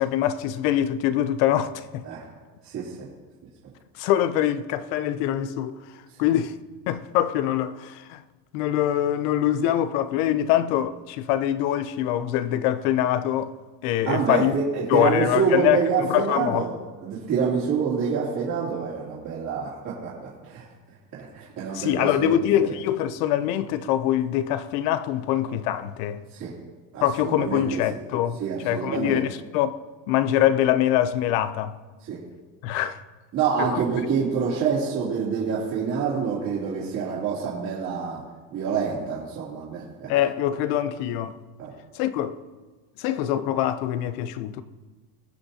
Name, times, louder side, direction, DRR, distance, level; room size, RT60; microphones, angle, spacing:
voice 1, 0.0-2.0 4.0-5.8 6.2-6.6 6.9-8.2 8.5-13.5 13.8-14.5 14.9-16.6 21.7-26.2 27.0-29.8 30.1-31.8 32.6-33.0 33.6-33.8 40.1-41.4 41.9-42.4 43.0-44.6, left 11 dB, 70° left, 0.7 m, -24 dB
voice 2, 2.6-3.1 14.0-16.8 17.0-20.6 21.1-22.7 26.3-26.5 26.9-27.8 28.4-29.2 32.0-32.2 33.3-38.2 38.5-40.1 41.6-41.7, right 6 dB, 45° right, 2.9 m, -27 dB
21.5 x 7.9 x 2.8 m
cardioid pair, 170°, 43 cm